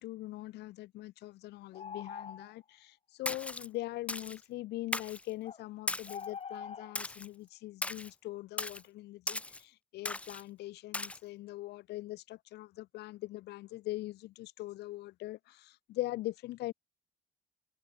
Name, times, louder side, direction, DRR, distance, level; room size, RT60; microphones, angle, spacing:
voice 1, 0.0-16.7, left 17 dB, 80° left, 1.9 m, -42 dB
sound 1, 1.7-2.6 5.4-5.6 6.1-6.9, left 6 dB, 35° left, 2.3 m, -43 dB
Splash splatter, 3.3-3.7 4.1-4.4 4.9-5.2 5.9-6.3 7.0-7.3 7.8-8.1 8.6-8.8 9.3-9.6 10.1-10.4 10.9-11.2, left 2 dB, 5° left, 0.4 m, -37 dB
cardioid pair, 110°, 17 cm